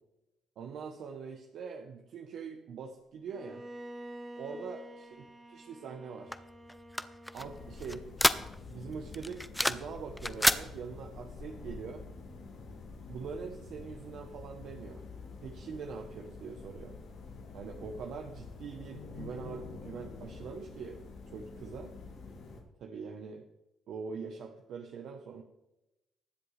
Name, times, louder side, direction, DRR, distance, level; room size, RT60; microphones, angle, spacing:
voice 1, 0.6-3.6 4.4-6.4 7.3-8.1 8.7-12.0 13.1-15.0 15.4-17.0 17.5-22.0 22.8-23.4 23.9-25.4, right 5 dB, 70° right, 3 dB, 0.9 m, -43 dB
Bowed string instrument, 3.3-8.3, right 1 dB, 25° right, 1.3 m, -49 dB
sound 1, 6.3-8.8 9.1-9.9 10.2-10.6, left 1 dB, 5° left, 0.6 m, -29 dB
sound 2, 7.3-22.6, left 4 dB, 75° left, 2.8 m, -47 dB
20.5 x 7.7 x 3.3 m, 0.96 s
cardioid pair, 90°, 0 cm